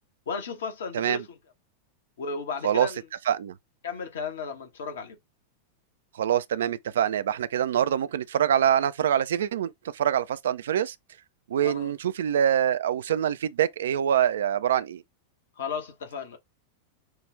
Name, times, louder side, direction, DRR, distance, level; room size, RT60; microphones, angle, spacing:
voice 1, 0.3-1.2 2.2-3.0 3.8-5.2 11.6-11.9 15.6-16.4, left 5 dB, 60° left, 1.3 m, -34 dB
voice 2, 6.1-10.9 11.5-15.0, right 9 dB, 60° right, 0.4 m, -25 dB
6.3 x 2.4 x 3.3 m
figure-of-eight pair, 90°, 0 cm